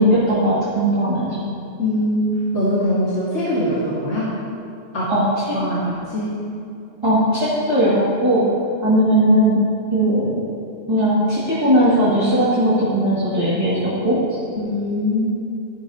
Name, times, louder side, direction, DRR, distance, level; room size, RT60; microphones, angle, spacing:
voice 1, 0.0-1.4 5.1-5.6 7.0-8.4 8.8-9.6 9.9-10.4 10.9-14.4, equal, 25° right, -10 dB, 2.1 m, -18 dB
voice 2, 1.8-4.3 4.9-5.1 5.5-6.4 14.6-15.2, left 1 dB, 85° left, -9 dB, 2.1 m, -22 dB
13.0 x 10.5 x 2.8 m, 2.5 s
omnidirectional pair, 1.2 m